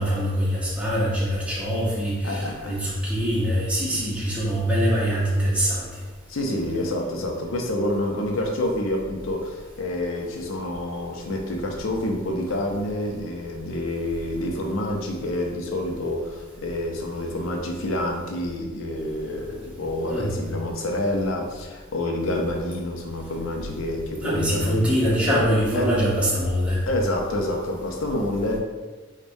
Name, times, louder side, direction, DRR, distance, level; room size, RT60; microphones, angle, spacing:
voice 1, 0.0-5.9 20.1-20.3 24.2-26.8, equal, 5° right, -7 dB, 0.7 m, -23 dB
voice 2, 2.2-2.8 6.3-24.8 25.7-25.9 26.9-28.6, left 1 dB, 75° left, 1 dB, 0.6 m, -28 dB
4.7 x 2.2 x 2.6 m, 1.3 s
head